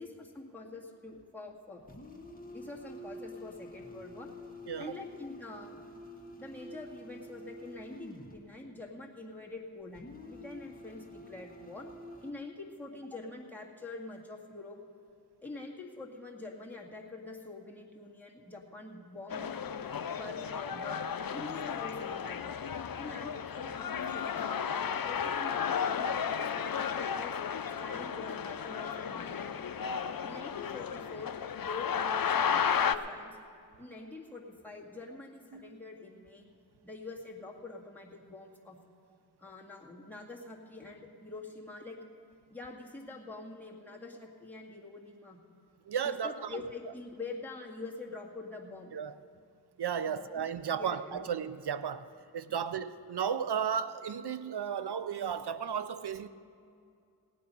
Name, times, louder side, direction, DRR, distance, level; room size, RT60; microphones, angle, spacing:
voice 1, 0.0-1.8 2.5-4.3 4.8-5.8 6.4-11.9 12.2-14.8 15.4-19.6 20.2-21.0 21.3-22.6 23.0-24.7 25.0-27.3 27.8-29.5 30.2-31.3 31.6-33.4 33.8-36.4 36.8-38.8 39.4-42.0 42.5-45.4 46.0-49.0 50.1-51.3 52.5-52.6, left 3 dB, 5° left, 2.0 m, -45 dB
sound 1, 1.9-8.4 9.9-12.3, left 1 dB, 20° left, 1.4 m, -48 dB
voice 2, 4.7-5.0 35.5-35.8 45.9-46.6 48.9-49.1 49.8-56.3, right 7 dB, 80° right, 0.5 m, -34 dB
sound 2, 19.3-32.9, left 7 dB, 60° left, 0.5 m, -33 dB
17.5 x 9.3 x 5.5 m
wide cardioid pair, 40°, 39 cm